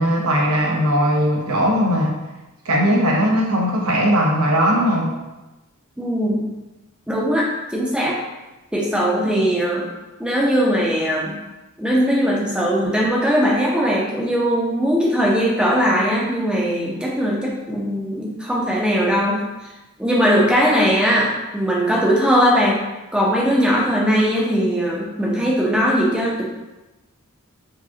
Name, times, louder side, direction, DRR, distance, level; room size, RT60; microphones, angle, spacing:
voice 1, 0.0-2.2 2.6-5.1, equal, 85° right, -2 dB, 0.8 m, -18 dB
voice 2, 6.0-6.5 7.1-8.2 8.7-9.8 10.2-11.4 11.8-19.4 20.0-22.8 23.1-26.4, equal, 5° right, -4 dB, 0.7 m, -19 dB
4.8 x 2.3 x 2.8 m, 1.0 s
head